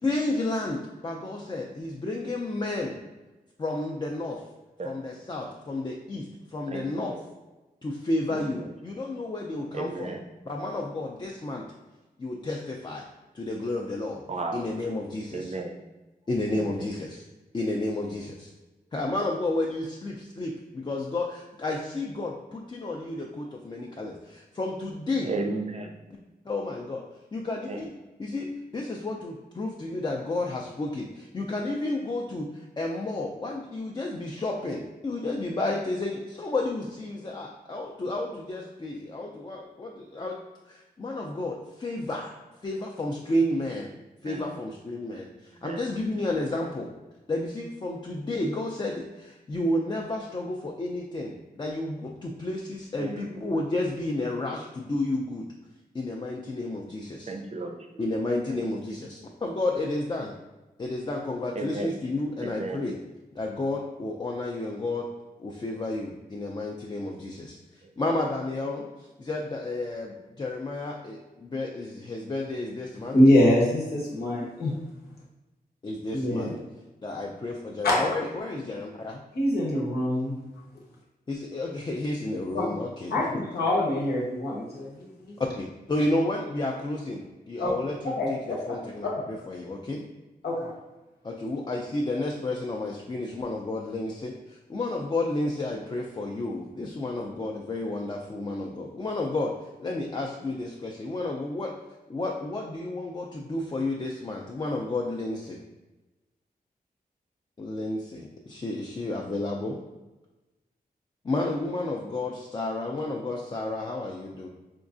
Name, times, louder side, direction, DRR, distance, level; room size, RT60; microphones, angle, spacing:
voice 1, 0.0-3.0 3.6-4.4 4.8-7.1 7.8-10.1 10.5-11.6 12.2-13.0 13.3-14.2 14.5-15.5 16.3-17.2 17.5-18.5 18.9-25.3 26.5-27.0 27.3-27.9 28.2-40.4 40.6-42.3 42.6-43.9 44.2-46.9 47.3-55.5 55.9-57.3 58.0-60.3 60.8-62.9 63.4-65.1 65.4-73.2 75.8-76.5 77.0-79.2 81.3-83.1 85.4-90.0 91.2-99.5 99.8-101.7 102.1-105.6 107.6-109.8 111.2-114.5, left 2 dB, 30° left, 0 dB, 0.4 m, -31 dB
voice 2, 6.7-7.1 8.3-8.7 9.7-10.2 14.3-14.7 15.3-15.8 16.5-17.0 25.2-26.0 27.7-27.8 44.2-44.5 45.5-45.8 53.0-53.5 57.3-57.8 58.5-58.6 61.6-62.0 62.4-62.8 67.8-68.0, right 3 dB, 45° right, 3 dB, 0.5 m, -34 dB
voice 3, 73.1-74.7 76.1-76.5 77.8-78.0 79.4-80.3 82.5-82.8 83.1-85.3 87.6-87.7 88.2-88.6 89.0-89.2 90.4-90.7, left 1 dB, 90° left, -4 dB, 0.9 m, -24 dB
4.4 x 2.3 x 2.5 m, 1.1 s
wide cardioid pair, 85°, 16 cm